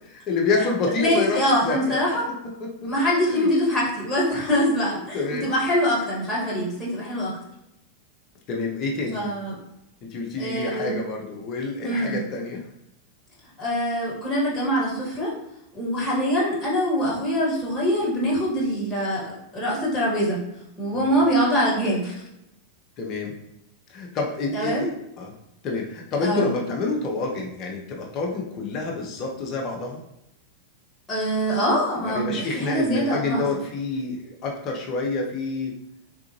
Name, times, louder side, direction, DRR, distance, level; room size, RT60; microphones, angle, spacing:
voice 1, 0.0-2.0 2.6-2.9 3.2-3.5 5.1-5.5 8.5-9.2 10.0-12.6 21.0-21.1 23.0-23.3 23.9-24.9 25.2-25.3 25.6-30.0 32.0-35.7, left 3 dB, 35° left, 0 dB, 0.7 m, -28 dB
voice 2, 1.0-2.3 2.9-7.3 9.1-9.6 10.4-10.9 11.8-12.2 13.6-15.3 15.7-19.2 19.5-20.4 20.8-22.1 24.5-24.9 26.2-26.5 31.1-33.4, equal, 15° left, -6 dB, 1.5 m, -24 dB
3.6 x 2.4 x 2.9 m, 0.83 s
figure-of-eight pair, 90°, 0 cm